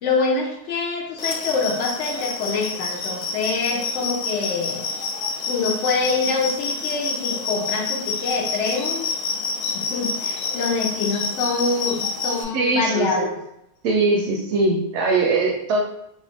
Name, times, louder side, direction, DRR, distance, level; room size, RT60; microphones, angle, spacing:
voice 1, 0.0-4.8 5.4-9.1 9.7-13.3, left 4 dB, 85° left, 1 dB, 0.9 m, -25 dB
sound 1, 1.2-12.4, left 4 dB, 55° left, 0.4 m, -28 dB
voice 2, 12.5-13.3 13.8-15.8, right 3 dB, 85° right, -1 dB, 0.9 m, -21 dB
2.7 x 2.7 x 3.3 m, 0.79 s
omnidirectional pair, 1.2 m